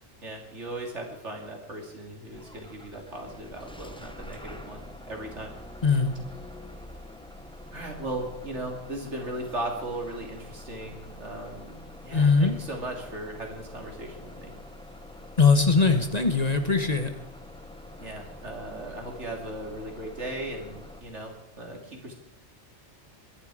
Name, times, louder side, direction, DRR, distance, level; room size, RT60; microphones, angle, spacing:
voice 1, 0.2-5.5 7.7-14.5 18.0-22.1, right 1 dB, 70° right, 1 dB, 3.3 m, -37 dB
Bus / Engine starting, 2.3-21.0, left 1 dB, 5° left, 1.0 m, -45 dB
voice 2, 5.8-6.1 12.1-12.5 15.4-17.1, left 4 dB, 35° left, 7 dB, 1.3 m, -21 dB
22.0 x 11.0 x 5.0 m, 0.85 s
omnidirectional pair, 1.2 m